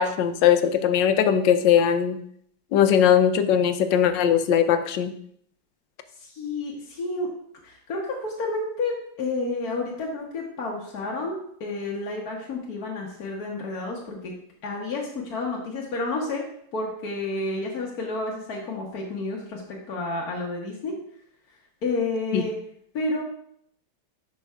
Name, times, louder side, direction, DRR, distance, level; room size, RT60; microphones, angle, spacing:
voice 1, 0.0-2.2 2.7-5.1 22.3-22.4, left 8 dB, 90° left, 9 dB, 1.3 m, -20 dB
voice 2, 6.2-7.3 7.6-14.3 14.6-16.4 16.7-20.9 21.8-22.5 22.9-23.2, left 2 dB, 60° left, -3 dB, 1.5 m, -30 dB
10.5 x 5.6 x 2.4 m, 0.67 s
omnidirectional pair, 1.9 m